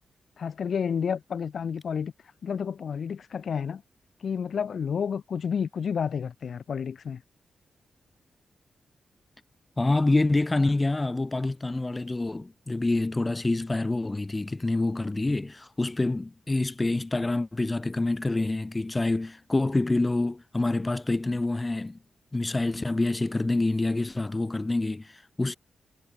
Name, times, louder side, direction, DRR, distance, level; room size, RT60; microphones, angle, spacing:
voice 1, 0.4-2.1 2.4-3.8 4.2-7.2, left 7 dB, 60° left, 0.4 m, -30 dB
voice 2, 9.8-22.0 22.3-25.6, left 2 dB, 20° left, 0.9 m, -27 dB
wide cardioid pair, 150°, 0 cm